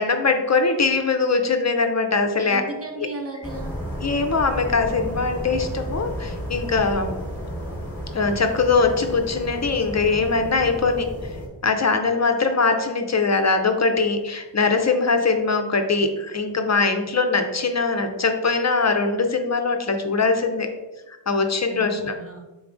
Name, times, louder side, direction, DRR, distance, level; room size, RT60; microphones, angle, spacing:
voice 1, 0.0-2.6 3.0-3.1 4.0-7.1 8.1-11.1 11.6-20.7 21.3-22.2, left 4 dB, 40° left, 6 dB, 0.4 m, -21 dB
voice 2, 2.5-3.8 21.7-22.4, right 2 dB, 30° right, 2 dB, 0.6 m, -35 dB
sound 1, 3.4-11.5, equal, 5° left, 1.1 m, -32 dB
3.8 x 3.5 x 2.5 m, 1.1 s
wide cardioid pair, 50°, 48 cm